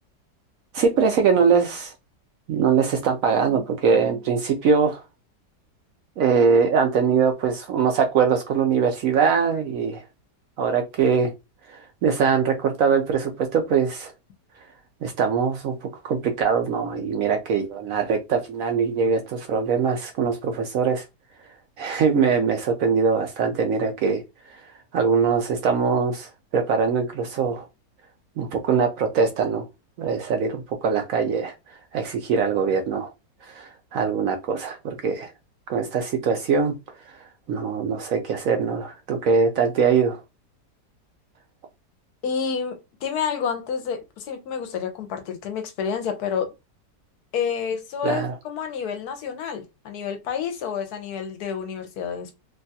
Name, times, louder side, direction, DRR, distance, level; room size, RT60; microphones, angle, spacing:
voice 1, 0.7-1.9 2.5-5.0 6.2-10.0 10.6-11.3 11.7-14.1 15.0-21.0 21.8-24.2 24.9-27.6 28.4-29.6 30.0-31.5 31.9-33.1 33.5-35.3 35.7-36.7 37.5-40.2 48.0-48.3, right 6 dB, 70° right, 0.8 m, -22 dB
voice 2, 42.2-46.5 47.3-52.3, left 7 dB, 70° left, 1.1 m, -29 dB
3.3 x 2.3 x 2.7 m
omnidirectional pair, 1.8 m